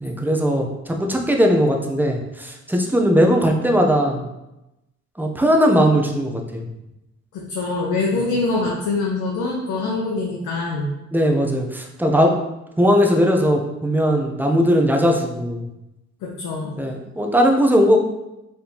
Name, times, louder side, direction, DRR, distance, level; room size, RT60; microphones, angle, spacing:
voice 1, 0.0-4.3 5.2-6.6 11.1-12.3 12.8-15.7 16.8-18.0, equal, 5° right, 1 dB, 0.6 m, -18 dB
voice 2, 7.3-10.9 16.2-16.7, left 3 dB, 85° left, -3 dB, 0.8 m, -24 dB
4.2 x 3.5 x 2.9 m, 0.93 s
cardioid pair, 90°, 30 cm